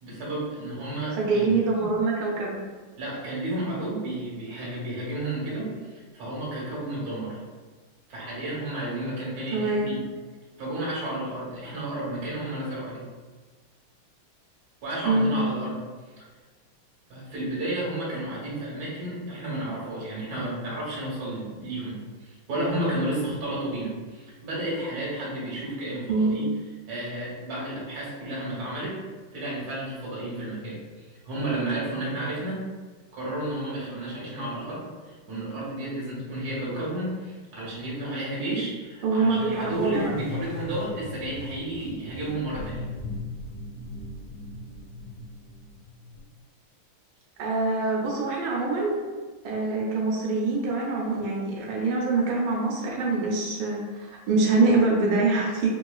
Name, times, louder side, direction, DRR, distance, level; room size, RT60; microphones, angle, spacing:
voice 1, 0.0-1.5 3.0-7.4 8.1-10.0 10.6-13.1 14.8-15.8 17.1-26.5 26.9-29.0 29.3-32.7 33.1-42.9, right 1 dB, 50° right, -6 dB, 1.5 m, -32 dB
voice 2, 1.1-2.6 9.5-9.9 15.0-15.5 26.1-26.4 39.0-40.1 47.4-49.0 49.4-55.7, right 3 dB, 85° right, -3 dB, 1.5 m, -24 dB
sound 1, 39.4-46.2, left 2 dB, 80° left, 1.8 m, -39 dB
3.6 x 3.0 x 2.3 m, 1.4 s
omnidirectional pair, 2.3 m